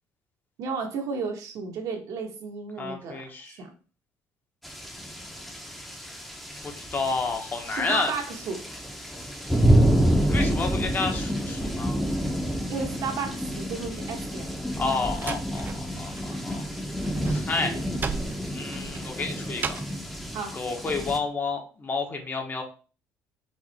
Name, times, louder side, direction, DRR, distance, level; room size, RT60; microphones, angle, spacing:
voice 1, 0.6-3.7 7.7-8.6 12.7-14.5 16.3-16.4 17.6-17.8 20.3-20.5, right 5 dB, 65° right, 3 dB, 1.3 m, -33 dB
voice 2, 2.8-3.5 6.6-8.1 10.3-12.0 14.8-16.6 17.2-17.7 18.5-19.8 20.5-22.6, left 4 dB, 30° left, 3 dB, 1.1 m, -30 dB
sound 1, 4.6-21.2, right 1 dB, ahead, 0.9 m, -28 dB
Slam, 14.5-16.3 16.6-20.0, right 5 dB, 30° right, 0.4 m, -36 dB
4.8 x 2.6 x 4.2 m, 0.37 s
cardioid pair, 105°, 6 cm